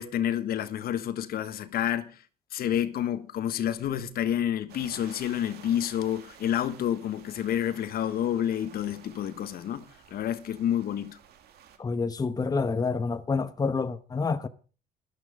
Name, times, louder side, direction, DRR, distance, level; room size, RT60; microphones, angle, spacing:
voice 1, 0.0-2.2 2.5-11.2, left 10 dB, 65° left, 1.3 m, -29 dB
sound 1, 4.7-11.8, right 9 dB, 70° right, 2.3 m, -52 dB
voice 2, 11.8-14.5, left 4 dB, 20° left, 1.0 m, -28 dB
13.0 x 12.0 x 5.0 m
cardioid pair, 110°, 17 cm